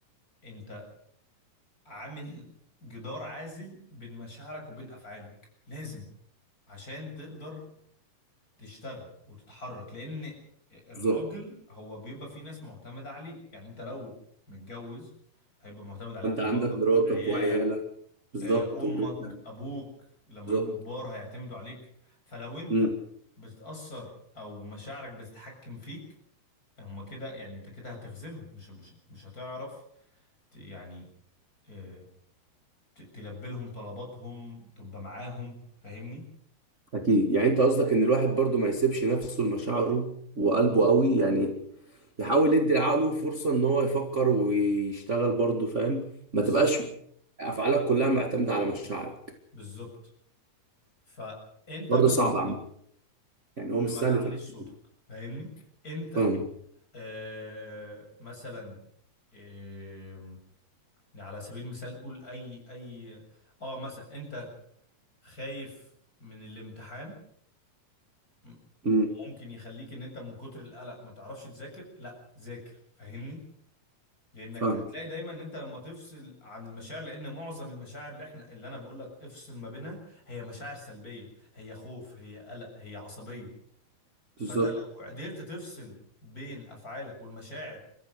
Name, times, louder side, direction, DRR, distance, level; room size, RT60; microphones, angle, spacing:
voice 1, 0.4-0.9 1.8-2.5 2.8-5.3 5.7-6.1 6.7-7.7 8.6-10.4 10.7-14.2 14.5-15.1 15.6-16.8 17.1-17.6 18.4-22.9 23.4-26.1 26.8-29.8 30.5-31.1 31.6-32.0 33.0-36.2 46.3-46.7 49.5-50.0 51.1-52.6 53.7-54.7 55.1-55.5 55.8-56.3 56.9-58.9 59.3-60.4 61.1-64.5 65.2-65.9 66.2-67.2 68.4-73.4 74.3-83.5 84.5-87.8, left 1 dB, 20° left, 2 dB, 7.5 m, -42 dB
voice 2, 16.2-17.8 18.3-19.3 20.5-20.7 22.7-22.9 36.9-41.6 42.2-46.8 47.4-49.1 51.9-52.5 53.6-54.3 56.2-56.4 68.8-69.1 74.6-74.8 84.4-84.7, right 3 dB, 35° right, 3 dB, 1.2 m, -25 dB
29.5 x 15.0 x 6.6 m, 0.67 s
omnidirectional pair, 4.6 m